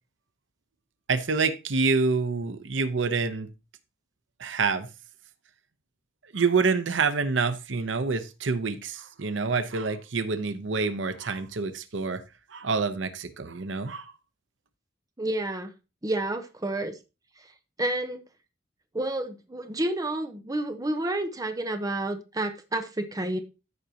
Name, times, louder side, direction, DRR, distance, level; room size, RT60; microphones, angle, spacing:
voice 1, 1.1-3.5 4.4-4.9 6.2-12.2 12.5-14.1, right 4 dB, 85° right, 0.8 m, -27 dB
voice 2, 15.2-15.7 16.0-17.0 17.4-17.5 17.8-18.2 18.9-23.4, right 1 dB, 20° right, 0.8 m, -30 dB
14.0 x 5.1 x 2.8 m
head